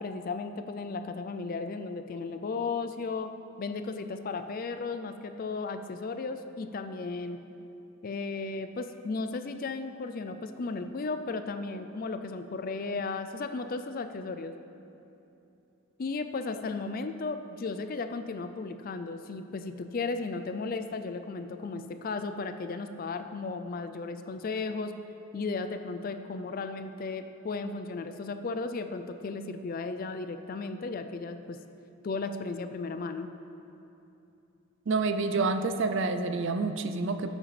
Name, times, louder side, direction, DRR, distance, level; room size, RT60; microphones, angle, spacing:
voice 1, 0.0-3.3 3.6-7.4 8.0-14.5 16.0-24.9 25.3-31.6 32.0-33.3, left 3 dB, 40° left, 9 dB, 0.3 m, -35 dB
voice 2, 34.9-37.3, right 3 dB, 55° right, 8 dB, 0.4 m, -28 dB
15.0 x 7.3 x 3.3 m, 2.8 s
head